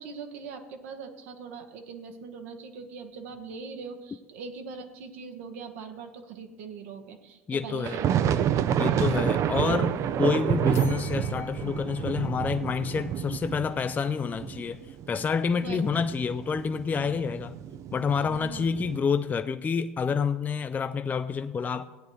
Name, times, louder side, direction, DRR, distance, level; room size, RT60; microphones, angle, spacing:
voice 1, 0.0-10.0 10.8-10.9 15.5-15.8 18.1-18.6, right 5 dB, 65° right, 5 dB, 1.1 m, -42 dB
voice 2, 7.5-8.0 8.8-14.8 15.1-17.6 17.9-21.8, left 6 dB, 20° left, 11 dB, 0.4 m, -28 dB
sound 1, 7.8-19.0, right 9 dB, 40° right, 0.6 m, -29 dB
sound 2, 10.7-13.5, left 7 dB, 40° left, 1.2 m, -49 dB
17.0 x 9.7 x 3.1 m, 1.2 s
figure-of-eight pair, 70°, 8 cm